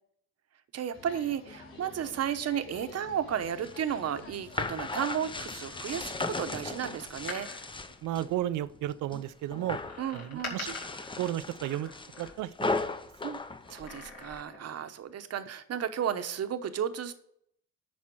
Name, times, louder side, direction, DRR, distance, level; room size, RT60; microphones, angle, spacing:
voice 1, 0.7-7.5 10.0-10.7 13.2-13.4 13.7-17.1, right 9 dB, 55° right, 10 dB, 0.9 m, -33 dB
sound 1, 0.9-6.7, left 3 dB, 40° left, 3.6 m, -50 dB
sound 2, 3.4-8.3 8.7-9.2 9.5-10.0 10.5-14.4, left 3 dB, 15° left, 0.7 m, -36 dB
Door, 7.1-8.9 9.8-12.7 13.6-14.8 15.1-15.2, left 3 dB, 65° left, 3.0 m, -45 dB
voice 2, 8.0-9.8 10.1-10.7 11.2-11.9 12.2-12.9, right 13 dB, 80° right, 16 dB, 0.6 m, -33 dB
10.5 x 4.3 x 6.2 m, 0.70 s
cardioid pair, 90°, 30 cm